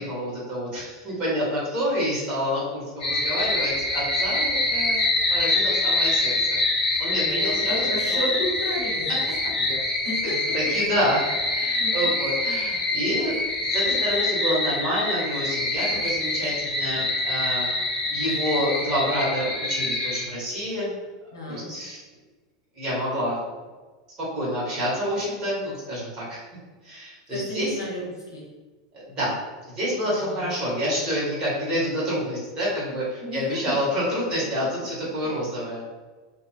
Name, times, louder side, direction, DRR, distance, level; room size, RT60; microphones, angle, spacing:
voice 1, 0.0-5.0 5.3-6.4 7.0-8.2 10.5-13.3 13.7-17.7 18.1-20.9 21.5-22.0 22.8-23.4 24.3-26.4 26.8-27.8 28.9-29.3 29.7-35.8, equal, 30° right, -6 dB, 1.4 m, -28 dB
sound 1, 3.0-20.2, left 2 dB, 30° left, 1.1 m, -25 dB
voice 2, 7.1-10.4 11.8-12.1 15.9-16.0 21.3-21.7 27.3-28.5 30.0-30.4 33.2-33.7, left 1 dB, 75° left, -4 dB, 0.8 m, -33 dB
2.7 x 2.6 x 2.3 m, 1.3 s
figure-of-eight pair, 85°, 2 cm